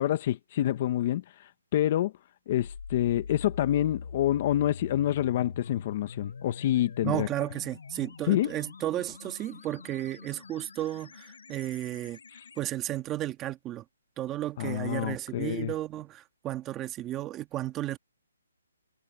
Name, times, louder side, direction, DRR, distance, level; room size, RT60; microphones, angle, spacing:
voice 1, 0.0-2.1 2.5-7.3 8.3-8.5 12.3-12.4 14.6-15.7, left 12 dB, 30° left, 1.2 m, -27 dB
sound 1, 2.6-12.6, left 5 dB, 70° left, 7.8 m, -44 dB
voice 2, 7.0-12.2 12.6-13.8 14.2-18.0, right 14 dB, 15° right, 1.7 m, -33 dB
hypercardioid pair, 165°, 0 cm